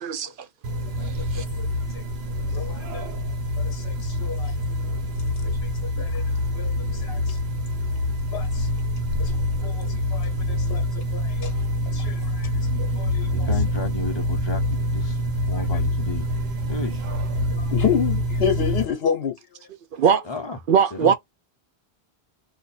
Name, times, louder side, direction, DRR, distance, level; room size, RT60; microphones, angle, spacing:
voice 1, 0.0-0.3 1.3-1.4 19.9-20.2 20.7-21.1, right 7 dB, 60° right, 0.7 m, -20 dB
sound 1, 0.6-18.8, left 1 dB, 85° right, 1.2 m, -26 dB
voice 2, 1.4-1.7 1.9-2.0 2.5-3.1 3.6-4.5 5.4-5.7 6.0-6.2 6.5-7.4 8.3-8.7 9.2-9.4 9.6-11.5 11.9-12.5 12.9-13.5 17.5-19.4, left 7 dB, 65° left, 1.0 m, -30 dB
voice 3, 13.3-15.2 15.5-16.3 16.7-17.0 18.7-18.8 20.2-20.6 20.9-21.1, left 3 dB, 30° left, 0.7 m, -32 dB
2.7 x 2.4 x 4.1 m
omnidirectional pair, 1.1 m